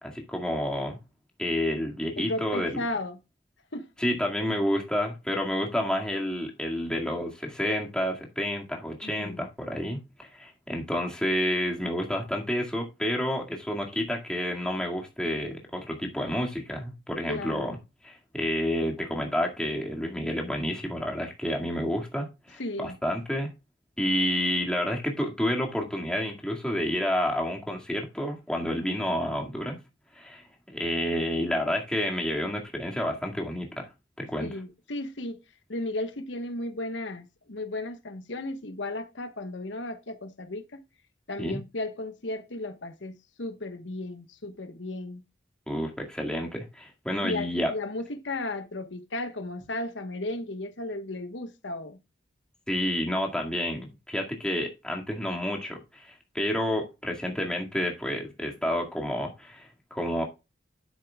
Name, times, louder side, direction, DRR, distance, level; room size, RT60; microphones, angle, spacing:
voice 1, 0.0-1.0 1.4-2.8 4.0-17.8 18.0-23.5 24.0-29.8 30.2-33.9 34.2-34.5 41.4-41.6 45.7-47.7 52.7-60.2, equal, 5° left, 1.9 m, -29 dB
voice 2, 2.2-3.2 3.7-3.9 9.0-9.5 17.3-17.8 22.6-23.0 34.4-35.4 35.7-40.8 41.3-45.2 47.2-52.0, left 2 dB, 90° left, 1.2 m, -35 dB
10.5 x 8.3 x 2.3 m
head